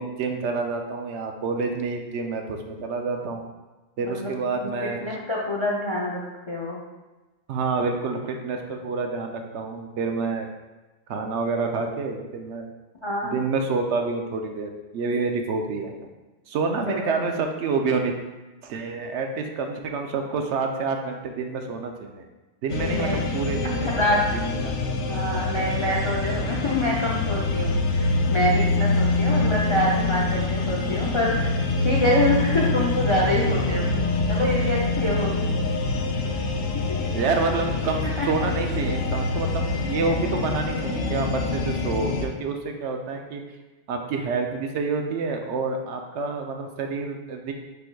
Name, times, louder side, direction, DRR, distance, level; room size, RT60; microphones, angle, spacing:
voice 1, 0.0-3.4 4.0-5.0 7.5-10.5 11.1-12.6 13.3-16.1 16.5-18.1 18.6-22.2 22.6-24.8 37.0-43.4 43.9-47.5, right 4 dB, 75° right, 4 dB, 0.9 m, -28 dB
voice 2, 4.0-6.8 13.0-13.4 16.9-17.1 22.8-23.2 23.8-24.2 25.0-34.0 34.3-35.5 38.2-38.3, left 1 dB, 45° left, -4 dB, 0.4 m, -26 dB
sound 1, 22.7-42.3, left 3 dB, 85° left, 0.9 m, -25 dB
5.1 x 2.3 x 4.5 m, 1.1 s
omnidirectional pair, 1.2 m